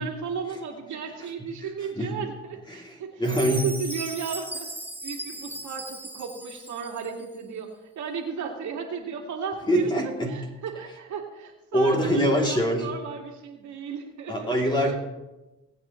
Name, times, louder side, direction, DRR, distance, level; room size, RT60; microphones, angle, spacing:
voice 1, 0.0-3.2 3.5-4.7 5.0-7.7 8.0-9.9 10.3-15.0, right 6 dB, 70° right, 0 dB, 2.3 m, -34 dB
voice 2, 2.7-3.6 9.7-10.3 11.7-12.9 14.3-15.0, equal, 15° left, -1 dB, 3.0 m, -24 dB
Chime, 3.2-7.2, right 1 dB, 5° right, 0.9 m, -37 dB
19.0 x 8.8 x 3.2 m, 1.0 s
cardioid pair, 90°, 30 cm